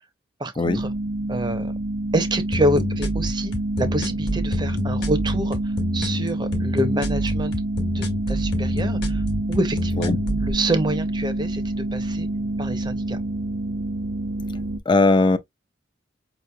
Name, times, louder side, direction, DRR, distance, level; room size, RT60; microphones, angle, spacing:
voice 1, 0.4-0.9 1.3-1.7 2.1-7.5 7.9-9.2 9.5-11.6 11.9-12.3 12.6-13.2, right 1 dB, 20° right, 0.6 m, -27 dB
sound 1, 0.6-14.8, right 1 dB, 75° right, 0.6 m, -27 dB
sound 2, 2.5-10.5, equal, 55° left, 1.2 m, -27 dB
voice 2, 14.9-15.4, left 3 dB, 25° left, 0.4 m, -18 dB
5.1 x 3.0 x 2.2 m
head